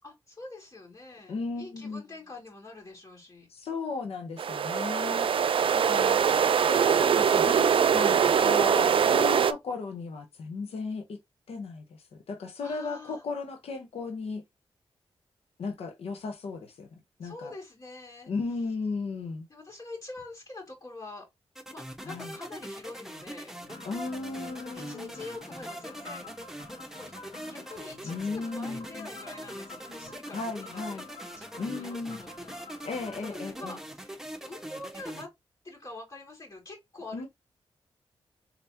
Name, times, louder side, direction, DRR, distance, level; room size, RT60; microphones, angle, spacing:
voice 1, 0.0-3.5 5.4-6.2 12.6-13.2 17.2-18.3 19.5-21.3 21.7-23.5 24.7-26.3 26.9-27.1 27.5-31.0 31.4-34.2 34.4-35.3 35.6-37.3, left 2 dB, 40° left, 2.3 m, -45 dB
voice 2, 1.3-2.0 3.5-5.3 5.7-6.2 6.6-11.2 11.5-14.4 15.6-16.9 17.2-17.5 18.3-19.5 22.0-22.3 23.8-25.1 28.0-29.1 30.3-31.1 31.6-32.2 32.9-33.8 37.1-37.3, left 4 dB, 85° left, 0.9 m, -35 dB
sound 1, 4.4-9.5, right 7 dB, 60° right, 0.4 m, -23 dB
sound 2, 21.6-35.3, right 1 dB, 5° right, 1.1 m, -42 dB
sound 3, 23.6-33.3, left 3 dB, 65° left, 1.4 m, -49 dB
4.1 x 3.4 x 2.8 m
cardioid pair, 60°, 10 cm